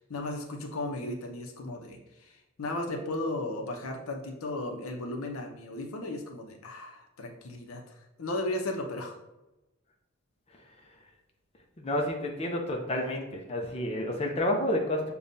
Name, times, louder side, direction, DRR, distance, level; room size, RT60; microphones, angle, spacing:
voice 1, 0.1-9.2, left 2 dB, 80° left, 2 dB, 0.7 m, -35 dB
voice 2, 10.5-11.1 11.8-15.1, left 1 dB, 30° left, 1 dB, 0.5 m, -30 dB
6.7 x 2.3 x 2.6 m, 0.96 s
head